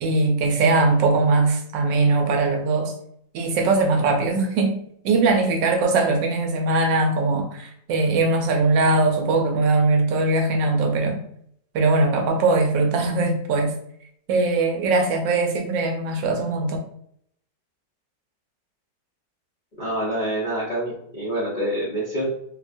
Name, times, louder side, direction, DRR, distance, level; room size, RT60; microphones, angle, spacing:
voice 1, 0.0-2.9 3.3-4.8 5.0-11.2 11.7-13.7 14.3-16.8, right 3 dB, 85° right, 3 dB, 1.3 m, -20 dB
voice 2, 19.8-22.2, right 1 dB, 55° left, -9 dB, 0.5 m, -26 dB
3.1 x 2.2 x 2.5 m, 0.69 s
omnidirectional pair, 1.9 m